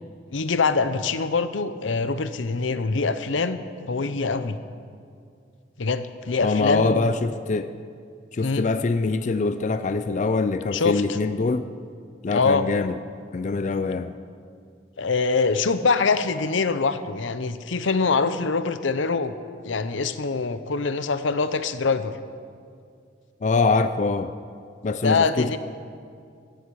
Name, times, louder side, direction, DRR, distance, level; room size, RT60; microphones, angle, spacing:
voice 1, 0.3-4.6 5.8-7.1 8.4-8.7 10.7-11.0 12.3-12.6 15.0-19.3 19.6-22.2 25.0-25.6, left 4 dB, 85° left, 12 dB, 0.7 m, -24 dB
voice 2, 6.4-7.7 8.3-11.7 12.2-13.0 13.3-14.1 23.4-24.3 24.8-25.6, left 3 dB, 40° left, 11 dB, 0.4 m, -24 dB
15.0 x 14.5 x 4.8 m, 2.3 s
head